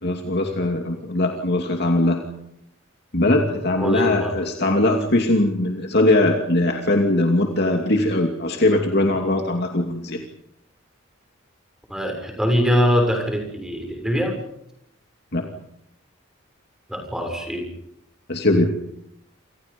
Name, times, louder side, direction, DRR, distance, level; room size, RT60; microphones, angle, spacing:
voice 1, 0.0-2.2 3.1-10.2 15.3-15.4 18.3-18.7, left 1 dB, 55° left, 2 dB, 2.7 m, -20 dB
voice 2, 3.7-4.3 11.9-14.3 16.9-17.7, equal, 5° right, 3 dB, 6.9 m, -23 dB
29.5 x 28.0 x 5.4 m, 0.78 s
head